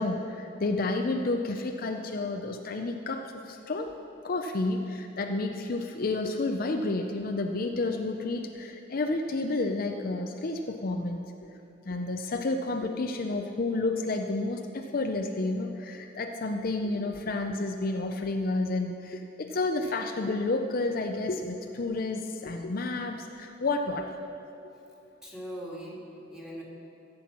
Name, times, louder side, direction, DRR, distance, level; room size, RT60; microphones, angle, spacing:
voice 1, 0.0-3.9 4.2-11.3 11.9-24.1, left 2 dB, 50° left, 4 dB, 0.5 m, -30 dB
voice 2, 25.2-26.6, equal, 5° right, -4 dB, 2.3 m, -40 dB
15.0 x 7.8 x 5.9 m, 2.8 s
head